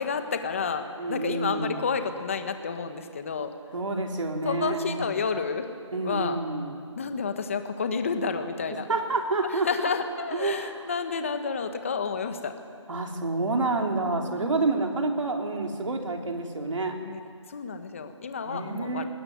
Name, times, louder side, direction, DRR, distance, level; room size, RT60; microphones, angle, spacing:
voice 1, 0.0-3.5 4.4-5.7 6.0-6.4 7.0-8.9 9.4-12.5 14.2-14.7 17.0-17.2 17.5-19.0, left 5 dB, 25° left, 8 dB, 1.4 m, -30 dB
voice 2, 1.0-1.8 3.7-5.1 5.9-6.8 8.9-9.7 10.3-10.9 12.9-17.0 18.5-19.1, right 3 dB, 70° right, 2 dB, 3.8 m, -28 dB
20.5 x 20.0 x 9.5 m, 2.2 s
hypercardioid pair, 175°, 16 cm